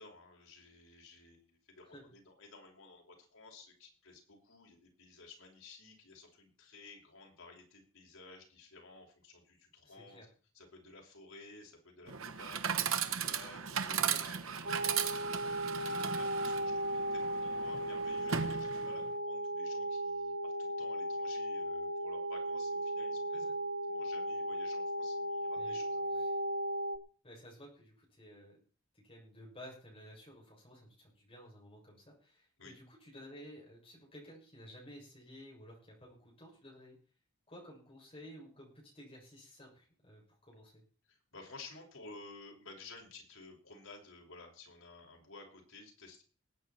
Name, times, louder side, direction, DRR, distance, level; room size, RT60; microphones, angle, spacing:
voice 1, 0.0-10.2 10.5-23.4 23.9-26.3 32.6-32.7 41.1-46.2, left 3 dB, 75° left, 0 dB, 5.9 m, -54 dB
voice 2, 9.8-10.3 13.9-14.2 23.3-23.5 25.6-25.8 27.2-28.6 28.9-37.0 37.5-40.8, equal, 25° left, -3 dB, 6.9 m, -54 dB
Chatter / Coin (dropping), 12.1-19.1, right 7 dB, 80° right, 1.3 m, -37 dB
sound 1, 14.6-27.0, right 1 dB, 60° right, 1.7 m, -36 dB
20.0 x 9.1 x 4.4 m, 0.38 s
head